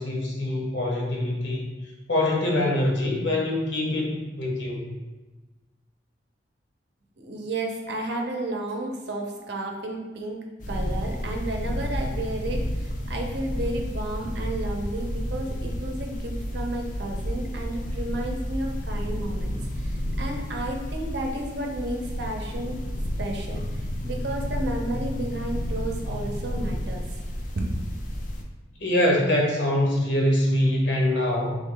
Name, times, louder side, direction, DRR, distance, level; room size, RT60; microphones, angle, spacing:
voice 1, 0.0-1.6 2.1-4.9 28.8-31.6, left 1 dB, 90° left, -1 dB, 1.0 m, -24 dB
voice 2, 7.2-10.4 10.7-22.8 23.2-23.6 24.0-27.2 27.5-27.7, right 1 dB, 70° right, 1 dB, 0.7 m, -32 dB
sound 1, 10.6-28.4, equal, 45° left, 0.5 m, -31 dB
3.5 x 3.1 x 3.8 m, 1.2 s
head